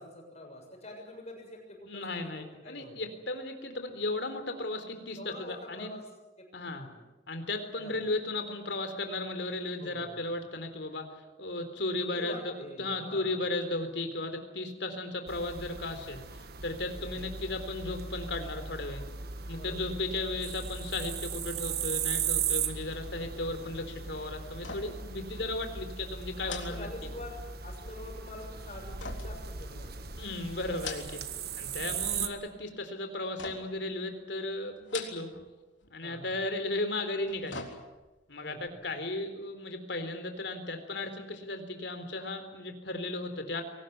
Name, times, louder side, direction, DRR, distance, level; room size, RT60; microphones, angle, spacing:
voice 1, 0.0-3.0 5.2-6.1 6.4-7.0 7.8-8.0 9.8-10.2 11.9-13.4 17.0-17.3 19.5-19.9 22.9-23.2 26.4-30.2 31.7-32.1 36.0-36.3 38.4-38.7, left 1 dB, 35° left, 1 dB, 7.2 m, -46 dB
voice 2, 1.9-5.9 6.5-6.9 7.3-19.0 19.5-27.1 30.2-31.2 31.6-35.3 35.9-37.7 38.3-43.6, left 2 dB, 65° left, 7 dB, 3.8 m, -35 dB
sound 1, 15.3-32.3, right 7 dB, 55° right, 1.5 m, -37 dB
sound 2, 24.5-25.1 25.4-25.6 26.4-27.5 29.0-30.1 30.6-31.4 31.7-32.3 33.4-33.9 34.8-35.5 35.8-35.9 37.0-38.2 38.6-38.7, left 5 dB, 85° left, 3.7 m, -43 dB
23.0 x 19.0 x 9.5 m, 1.1 s
head